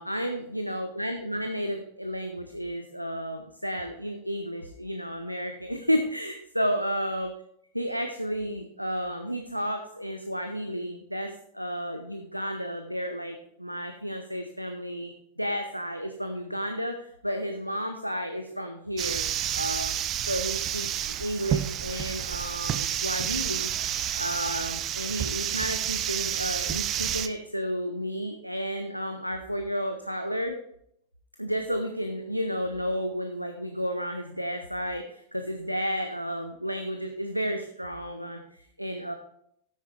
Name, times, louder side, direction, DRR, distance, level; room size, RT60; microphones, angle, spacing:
voice 1, 0.0-7.3 7.7-15.1 15.4-19.3 19.5-19.9 20.3-23.7 24.2-30.5 31.4-39.1, equal, 90° right, 6 dB, 0.7 m, -32 dB
sound 1, 19.0-27.3, right 10 dB, 30° right, 0.6 m, -30 dB
9.7 x 8.8 x 3.3 m, 0.71 s
figure-of-eight pair, 90°, 0 cm